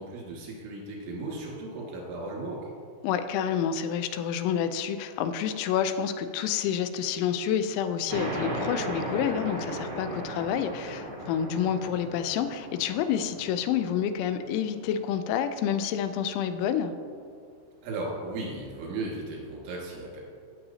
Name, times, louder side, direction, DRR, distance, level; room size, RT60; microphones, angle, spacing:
voice 1, 0.0-2.7 17.8-20.2, right 2 dB, 80° right, -3 dB, 4.4 m, -36 dB
voice 2, 3.0-16.9, left 8 dB, 85° left, 10 dB, 3.0 m, -28 dB
sound 1, 8.1-15.3, right 1 dB, 55° right, 1.2 m, -36 dB
17.0 x 6.9 x 2.8 m, 2.2 s
omnidirectional pair, 5.3 m